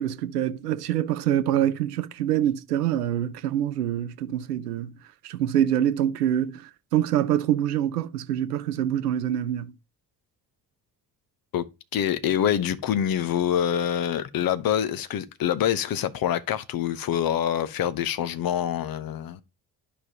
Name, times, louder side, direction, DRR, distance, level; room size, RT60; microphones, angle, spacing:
voice 1, 0.0-4.9 5.2-9.7, right 11 dB, 85° right, 0.5 m, -25 dB
voice 2, 11.9-19.4, left 10 dB, 50° left, 0.9 m, -25 dB
11.0 x 5.2 x 2.9 m
figure-of-eight pair, 40°, 46 cm